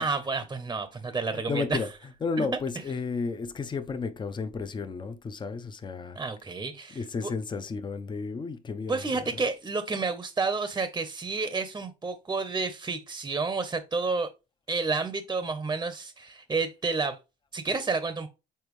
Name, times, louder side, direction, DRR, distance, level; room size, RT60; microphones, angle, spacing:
voice 1, 0.0-1.8 2.4-2.5 6.2-7.3 8.9-14.3 14.7-17.2 17.5-18.3, right 4 dB, 20° right, 0.9 m, -30 dB
voice 2, 1.1-6.2 6.9-9.4, left 4 dB, 25° left, 0.8 m, -33 dB
7.1 x 4.4 x 3.2 m
cardioid pair, 110°, 17 cm